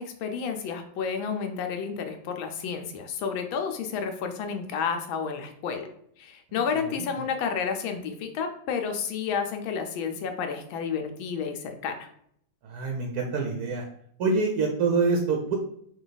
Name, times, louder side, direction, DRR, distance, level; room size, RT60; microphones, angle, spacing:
voice 1, 0.0-5.9 6.2-12.1, left 6 dB, 80° left, 5 dB, 1.4 m, -31 dB
voice 2, 12.6-13.8 14.2-15.5, right 4 dB, 70° right, 2 dB, 0.9 m, -25 dB
4.9 x 2.3 x 3.9 m, 0.68 s
omnidirectional pair, 2.2 m